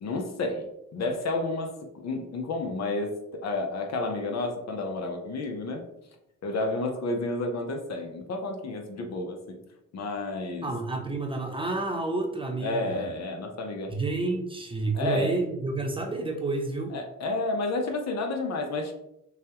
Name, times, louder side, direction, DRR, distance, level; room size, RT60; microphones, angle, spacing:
voice 1, 0.0-1.7 2.0-5.8 6.4-9.6 9.9-10.7 12.6-13.9 14.9-15.4 16.9-18.9, left 2 dB, 60° left, 3 dB, 0.9 m, -31 dB
voice 2, 10.6-13.0 13.9-16.9, right 3 dB, 15° right, 1 dB, 0.9 m, -30 dB
6.5 x 2.4 x 2.9 m, 0.82 s
cardioid pair, 90°, 30 cm